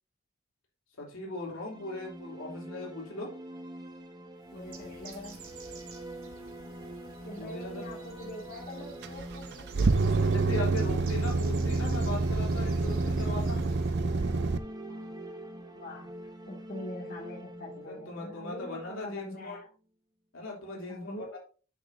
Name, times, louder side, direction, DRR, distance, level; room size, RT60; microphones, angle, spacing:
voice 1, 1.0-3.3 7.4-7.9 9.8-13.6 17.8-19.6 20.3-21.4, left 2 dB, 75° left, -2 dB, 3.1 m, -39 dB
sound 1, 1.3-19.3, right 1 dB, 20° right, 1.0 m, -44 dB
Bird, 4.4-14.1, right 4 dB, 85° right, 1.7 m, -51 dB
voice 2, 4.5-5.5 7.2-10.3 11.3-11.4 14.9-15.2 15.7-16.2 16.5-19.7 20.9-21.4, left 1 dB, 45° left, -3 dB, 2.3 m, -44 dB
sound 2, 9.0-14.6, right 3 dB, 55° right, 0.5 m, -27 dB
9.8 x 6.0 x 2.7 m, 0.37 s
head